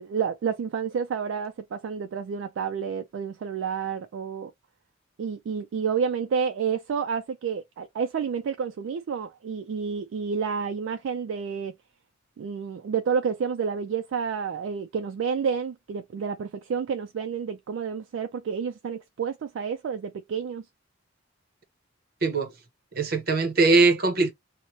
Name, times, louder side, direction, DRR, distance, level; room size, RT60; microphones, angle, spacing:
voice 1, 0.0-4.5 5.2-11.8 12.4-20.6, right 6 dB, 70° right, 0.3 m, -30 dB
voice 2, 22.2-22.5 22.9-24.3, right 3 dB, 50° right, 0.8 m, -21 dB
3.0 x 2.1 x 2.6 m
head